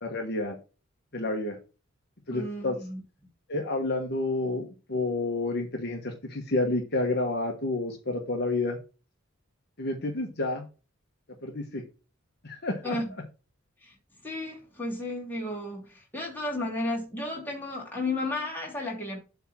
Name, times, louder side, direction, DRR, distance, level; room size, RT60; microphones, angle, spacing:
voice 1, 0.0-0.6 1.1-1.6 2.3-2.8 3.5-8.8 9.8-10.6 11.4-11.8 12.4-13.0, left 2 dB, 50° left, 1.3 m, -29 dB
voice 2, 2.3-3.0 12.8-13.1 13.8-13.9 14.2-19.2, left 2 dB, 10° left, 2.9 m, -33 dB
7.9 x 3.6 x 6.0 m
head